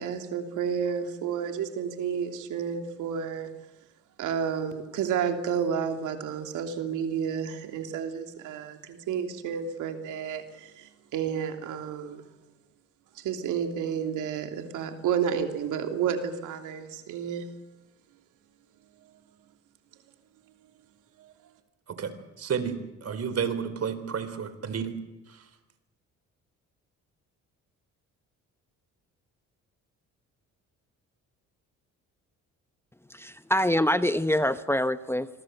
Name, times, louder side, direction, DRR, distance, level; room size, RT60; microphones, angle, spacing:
voice 1, 0.0-3.5 4.2-10.4 11.1-12.2 13.2-17.4, right 7 dB, 85° right, 6 dB, 3.1 m, -30 dB
voice 2, 21.9-25.0 25.3-25.4, right 7 dB, 55° right, 12 dB, 4.0 m, -31 dB
voice 3, 33.1-35.3, left 1 dB, 10° left, 12 dB, 1.0 m, -25 dB
26.5 x 23.0 x 7.9 m, 0.99 s
cardioid pair, 90°, 30 cm